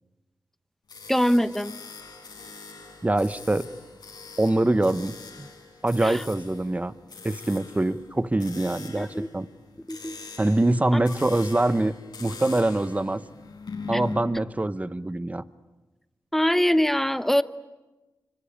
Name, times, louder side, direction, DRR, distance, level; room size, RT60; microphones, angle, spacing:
sound 1, 0.9-14.2, left 4 dB, 75° left, 7.6 m, -42 dB
voice 1, 1.1-1.7 6.0-6.2 9.0-9.3 9.9-10.2 10.9-11.0 13.9-14.0 16.3-17.4, equal, 5° left, 13 dB, 1.0 m, -23 dB
voice 2, 3.0-3.7 4.4-5.5 5.8-6.9 7.2-9.5 10.4-11.9 12.2-13.2 13.9-15.4, right 2 dB, 20° right, 13 dB, 1.1 m, -24 dB
25.5 x 24.5 x 8.7 m, 1.1 s
cardioid pair, 60°, 7 cm